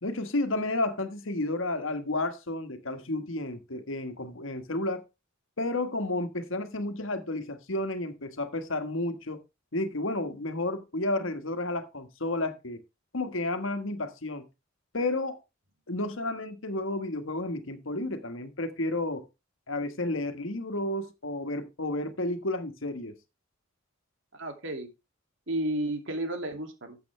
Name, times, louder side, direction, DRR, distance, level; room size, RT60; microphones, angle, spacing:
voice 1, 0.0-5.0 5.6-9.4 9.7-12.8 13.1-14.5 14.9-15.4 15.9-19.2 19.7-23.2, left 2 dB, 70° left, 1.5 m, -31 dB
voice 2, 24.3-24.9 25.5-27.0, right 1 dB, 65° right, 2.5 m, -32 dB
12.0 x 7.9 x 3.3 m
head